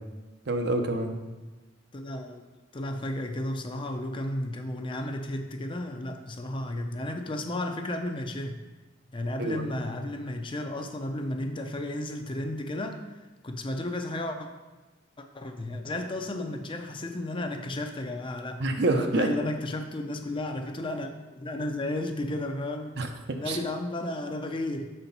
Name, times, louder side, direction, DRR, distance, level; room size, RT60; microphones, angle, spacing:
voice 1, 0.5-1.2 9.4-9.6 18.6-19.3 23.0-23.6, right 2 dB, 65° right, 5 dB, 0.8 m, -27 dB
voice 2, 1.9-2.4 2.7-8.6 9.1-14.5 15.2-18.6 18.9-23.0 23.4-24.9, left 1 dB, 25° left, 5 dB, 0.5 m, -33 dB
6.8 x 4.4 x 5.3 m, 1.2 s
head